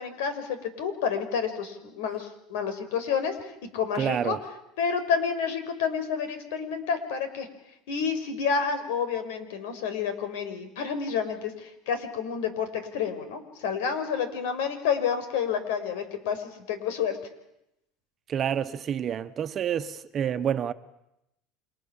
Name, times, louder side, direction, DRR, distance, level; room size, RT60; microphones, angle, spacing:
voice 1, 0.0-3.3 3.7-4.4 4.8-7.5 7.9-12.7 12.9-17.2, left 6 dB, 80° left, 5.4 m, -29 dB
voice 2, 4.0-4.4 18.3-20.7, right 9 dB, 35° right, 1.3 m, -28 dB
30.0 x 26.0 x 7.3 m
supercardioid pair, 120°, 0 cm